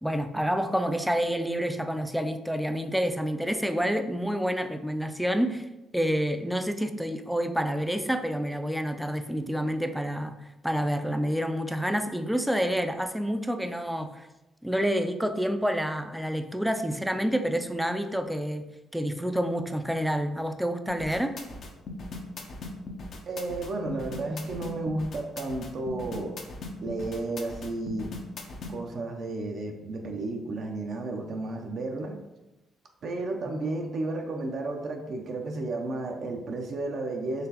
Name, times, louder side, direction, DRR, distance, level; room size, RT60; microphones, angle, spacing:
voice 1, 0.0-5.7 5.9-10.4 10.6-14.3 14.6-18.6 18.9-21.3, equal, ahead, 7 dB, 0.3 m, -28 dB
sound 1, 20.9-28.7, left 2 dB, 55° left, 0.6 m, -39 dB
voice 2, 23.3-26.4 26.8-28.1 28.7-32.2 33.0-37.5, right 2 dB, 60° right, 3 dB, 0.5 m, -32 dB
3.9 x 3.1 x 2.8 m, 0.97 s
cardioid pair, 90°, 0 cm